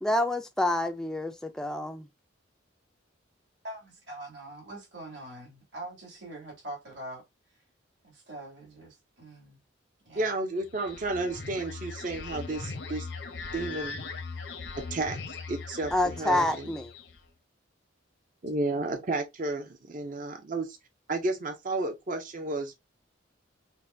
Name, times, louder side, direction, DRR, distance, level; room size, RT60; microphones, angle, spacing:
voice 1, 0.0-2.0 15.9-16.9, left 1 dB, 5° left, 0.3 m, -28 dB
voice 2, 3.6-7.2 8.0-9.6 10.0-10.3, right 1 dB, 65° right, 2.4 m, -43 dB
voice 3, 10.2-13.1 13.5-14.0 14.9-15.2 15.5-16.7 18.4-20.7 21.1-22.7, right 2 dB, 45° right, 0.6 m, -32 dB
sound 1, 10.6-17.3, left 4 dB, 75° left, 0.8 m, -40 dB
5.5 x 2.2 x 2.6 m
head